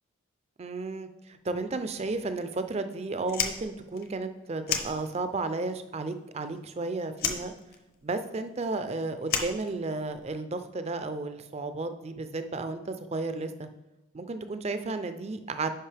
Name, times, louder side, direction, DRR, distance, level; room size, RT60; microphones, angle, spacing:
voice 1, 0.6-7.5 8.0-13.7 14.1-15.7, right 3 dB, 30° right, 9 dB, 0.4 m, -33 dB
Fire, 3.2-5.5 5.8-6.8 7.1-10.3, left 6 dB, 45° left, 0.7 m, -33 dB
10.0 x 5.1 x 3.4 m, 1.0 s
head